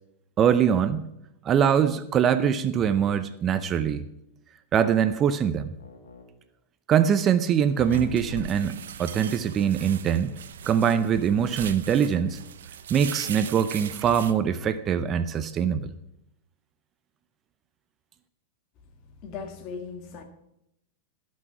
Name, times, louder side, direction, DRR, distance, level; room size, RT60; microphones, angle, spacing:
voice 1, 0.4-1.1 1.4-4.0 4.7-5.7 6.9-10.3 10.7-12.4 12.9-15.9, right 8 dB, 30° right, 12 dB, 0.5 m, -23 dB
sound 1, 2.8-3.3 5.8-6.3 7.8-8.3 10.8-11.5, left 3 dB, 90° left, 2.0 m, -41 dB
sound 2, 7.6-14.3, right 8 dB, 80° right, 0.6 m, -39 dB
voice 2, 19.2-20.2, left 5 dB, 45° left, 6 dB, 1.8 m, -37 dB
13.0 x 6.2 x 5.9 m, 0.84 s
hypercardioid pair, 125°, 0 cm